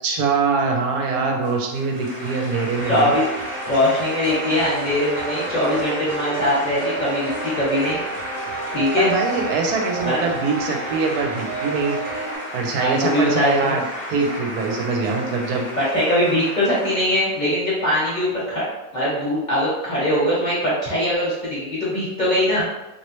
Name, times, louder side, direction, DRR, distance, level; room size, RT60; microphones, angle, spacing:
voice 1, 0.0-3.1 9.0-12.0 12.5-13.8 14.1-15.7, right 4 dB, 85° right, 1 dB, 1.2 m, -23 dB
sound 1, 1.4-17.5, equal, 5° left, 0.8 m, -33 dB
sound 2, 2.8-12.4, right 3 dB, 60° right, 1.0 m, -32 dB
voice 2, 2.9-3.2 3.7-8.0 8.7-9.1 10.0-10.2 12.8-13.7 15.8-18.6 18.9-22.6, left 1 dB, 35° left, -7 dB, 0.9 m, -21 dB
3.1 x 2.8 x 3.0 m, 0.97 s
omnidirectional pair, 1.6 m